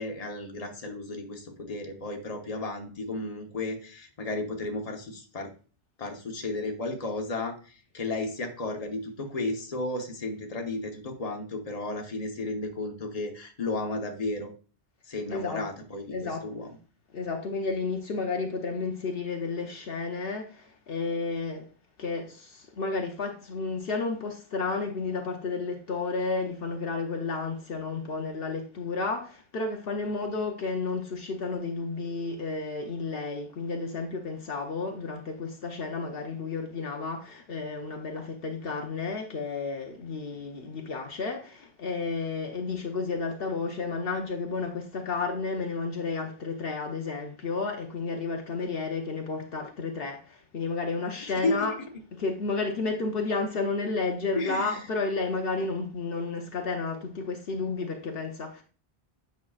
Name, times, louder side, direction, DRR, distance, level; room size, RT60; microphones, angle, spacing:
voice 1, 0.0-5.5 6.0-14.5 15.1-16.7 51.2-51.7 54.3-54.8, left 2 dB, 40° left, 1.1 m, -33 dB
voice 2, 15.3-15.6 16.1-16.5 17.1-21.7 22.0-51.7 52.2-58.6, left 4 dB, 70° left, 0.9 m, -32 dB
8.4 x 5.7 x 2.4 m
omnidirectional pair, 1.0 m